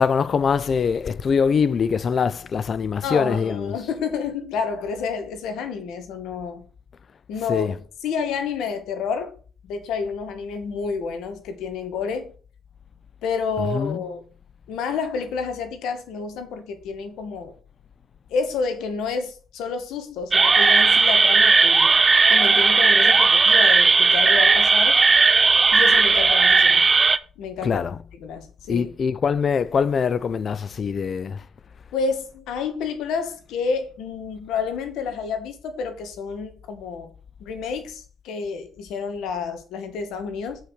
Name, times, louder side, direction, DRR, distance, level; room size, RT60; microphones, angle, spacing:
voice 1, 0.0-3.8 7.5-7.8 13.7-14.0 27.6-28.0 28.7-31.4, left 6 dB, 50° left, 0.6 m, -23 dB
voice 2, 3.0-6.6 7.3-7.7 8.0-9.3 9.7-12.3 13.2-14.2 14.7-17.5 18.3-22.0 22.3-25.0 25.7-26.8 27.4-27.8 28.2-28.9 31.9-37.1 37.4-40.6, left 5 dB, 85° left, 2.0 m, -29 dB
sound 1, 20.3-27.2, right 4 dB, 30° right, 0.6 m, -16 dB
7.5 x 5.7 x 6.6 m
cardioid pair, 90°, 0 cm